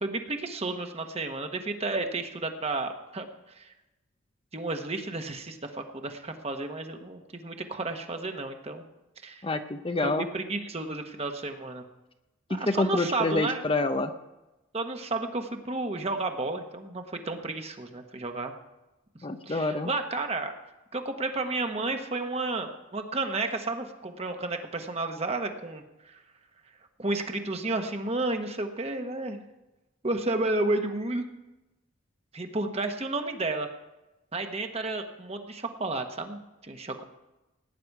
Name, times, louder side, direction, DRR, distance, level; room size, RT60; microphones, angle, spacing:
voice 1, 0.0-3.7 4.5-8.8 9.2-9.4 10.0-11.8 12.5-13.7 14.7-18.5 19.5-20.5 20.9-26.2 27.0-29.4 30.0-31.2 32.3-33.7 34.3-37.0, right 2 dB, 30° right, 5 dB, 1.2 m, -32 dB
voice 2, 9.4-10.2 12.5-14.1 19.2-19.9, left 2 dB, 25° left, 8 dB, 0.6 m, -27 dB
17.5 x 9.7 x 4.8 m, 1.0 s
head